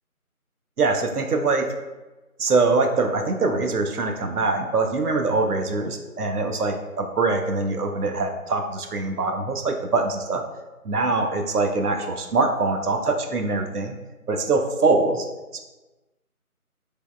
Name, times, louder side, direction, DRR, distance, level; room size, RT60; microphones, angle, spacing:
voice 1, 0.8-1.7 2.4-10.4 10.8-14.0 14.3-15.2 15.5-15.6, right 3 dB, 85° right, 4 dB, 0.6 m, -23 dB
3.3 x 3.2 x 2.2 m, 1.1 s
figure-of-eight pair, 180°, 44 cm